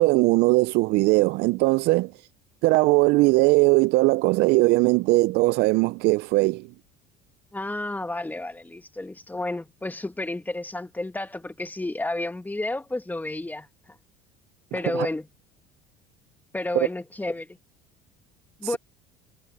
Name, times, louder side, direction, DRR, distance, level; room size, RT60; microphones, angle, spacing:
voice 1, 0.0-2.3 2.6-6.7 14.9-15.1 18.6-18.8, right 22 dB, 65° right, 0.6 m, -20 dB
voice 2, 7.5-13.7 14.7-15.3 16.5-17.5 18.6-18.8, left 2 dB, 10° left, 1.9 m, -31 dB
hypercardioid pair, 75°, 18 cm